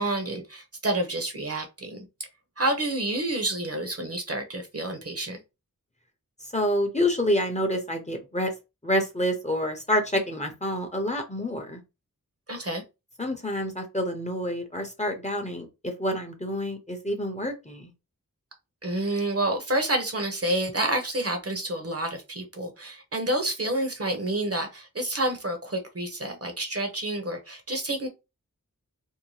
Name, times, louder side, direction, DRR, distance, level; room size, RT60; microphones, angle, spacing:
voice 1, 0.0-2.1 2.6-5.4 12.5-12.8 18.8-28.1, right 1 dB, 45° right, 0.8 m, -29 dB
voice 2, 6.5-8.5 8.8-11.8 13.2-17.9, left 1 dB, 20° left, 0.7 m, -28 dB
2.7 x 2.1 x 3.0 m
wide cardioid pair, 50°, 34 cm